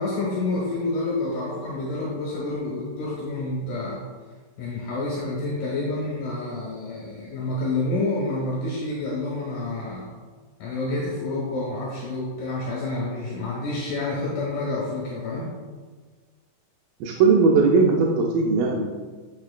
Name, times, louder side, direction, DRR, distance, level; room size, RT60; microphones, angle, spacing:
voice 1, 0.0-4.0 4.6-10.1 10.6-15.5, left 2 dB, 70° left, -5 dB, 2.6 m, -28 dB
voice 2, 17.0-18.9, right 4 dB, 85° right, -1 dB, 2.4 m, -19 dB
8.7 x 6.0 x 2.2 m, 1.5 s
omnidirectional pair, 4.1 m